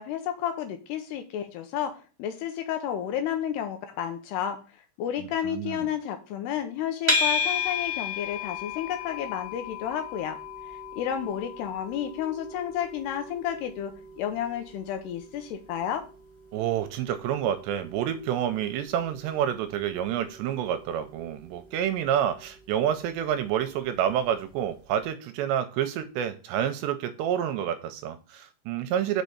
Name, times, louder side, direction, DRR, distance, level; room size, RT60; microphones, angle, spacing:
voice 1, 0.0-4.6 5.0-10.4 10.7-16.1, left 9 dB, 75° left, 7 dB, 2.6 m, -31 dB
voice 2, 5.2-5.8 16.5-29.2, right 10 dB, 80° right, 9 dB, 2.6 m, -28 dB
sound 1, 7.1-24.3, left 4 dB, 10° right, 1.4 m, -35 dB
6.3 x 5.5 x 6.9 m, 0.35 s
omnidirectional pair, 5.3 m